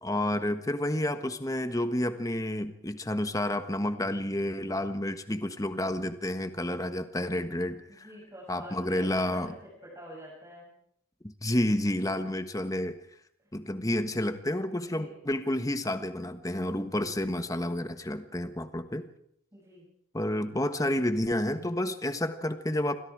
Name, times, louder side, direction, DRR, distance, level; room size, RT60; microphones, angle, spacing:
voice 1, 0.0-8.1 8.5-9.5 11.2-13.0 13.5-19.0 20.1-22.9, left 1 dB, 15° left, 9 dB, 1.4 m, -30 dB
voice 2, 7.9-9.5 9.8-10.7 12.2-12.3 14.7-15.2 19.5-19.9, equal, 15° right, -5 dB, 7.5 m, -47 dB
28.5 x 24.0 x 4.9 m, 0.71 s
head